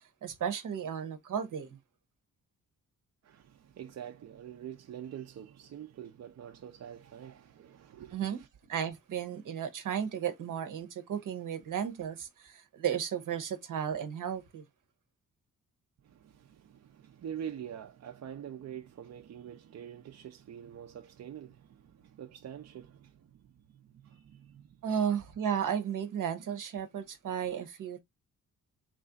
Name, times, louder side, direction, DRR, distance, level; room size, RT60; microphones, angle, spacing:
voice 1, 0.2-1.8 8.1-8.4 8.7-14.6 24.8-28.0, right 8 dB, 70° right, 0.9 m, -34 dB
voice 2, 3.2-8.5 16.0-25.1, right 9 dB, 55° right, 0.5 m, -46 dB
3.2 x 2.4 x 3.8 m
cardioid pair, 115°, 33 cm